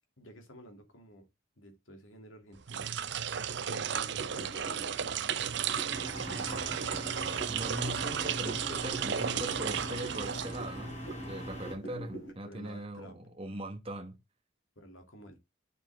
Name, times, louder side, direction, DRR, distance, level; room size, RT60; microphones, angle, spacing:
voice 1, 0.2-1.3 1.6-3.0 3.6-5.8 6.2-6.7 7.0-7.4 12.4-13.2 14.8-15.4, equal, 80° left, 2.6 m, -52 dB
sound 1, 2.6-11.0, right 8 dB, 60° right, 0.6 m, -34 dB
sound 2, 3.8-12.3, right 2 dB, 65° left, 5.3 m, -46 dB
sound 3, 5.9-11.7, equal, 35° left, 5.0 m, -42 dB
voice 2, 7.5-14.2, right 1 dB, 30° right, 1.3 m, -40 dB
9.1 x 7.1 x 3.5 m
head